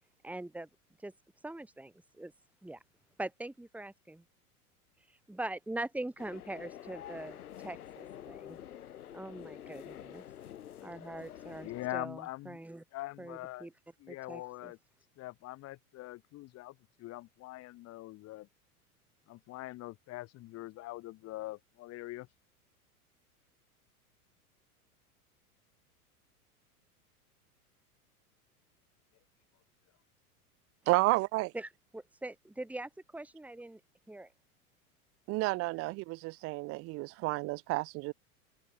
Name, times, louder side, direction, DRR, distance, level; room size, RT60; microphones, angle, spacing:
voice 1, 0.2-0.7 1.0-1.1 1.4-2.3 2.6-2.8 3.2-4.2 5.3-7.4 7.6-8.6 9.1-10.2 10.8-12.8 13.2-13.7 14.1-14.7 31.5-33.8 34.1-34.3, right 2 dB, 5° right, 2.4 m, -42 dB
sound 1, 6.2-11.9, left 11 dB, 75° left, 4.6 m, -48 dB
voice 2, 11.6-12.6 12.9-13.7 14.0-14.8 15.2-18.5 19.3-22.3, left 17 dB, 35° left, 1.1 m, -43 dB
voice 3, 30.9-31.5 35.3-38.1, right 22 dB, 30° right, 0.6 m, -31 dB
open air
hypercardioid pair, 95°, 45 cm